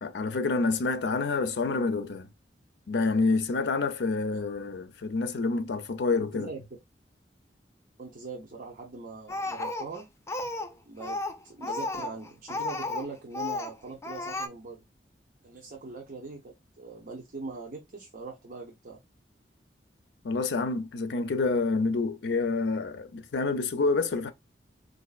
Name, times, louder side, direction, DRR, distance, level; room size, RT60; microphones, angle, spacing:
voice 1, 0.0-2.3 2.9-6.5 20.2-24.3, left 3 dB, 80° left, 0.5 m, -28 dB
voice 2, 8.0-10.1 10.9-14.8 15.4-19.0, right 3 dB, 55° right, 0.7 m, -41 dB
Speech, 9.3-10.7 11.0-13.1 13.3-13.7 14.0-14.5, left 2 dB, 15° left, 0.4 m, -33 dB
4.0 x 2.6 x 2.3 m
head